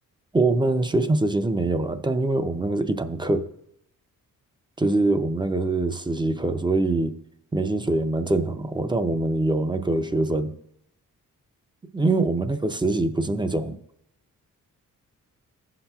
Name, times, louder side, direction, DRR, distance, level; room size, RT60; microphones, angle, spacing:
voice 1, 0.3-3.5 4.8-7.2 7.5-10.5 11.9-13.8, right 2 dB, 15° right, 0.4 m, -24 dB
16.0 x 5.7 x 2.3 m
wide cardioid pair, 120°, 34 cm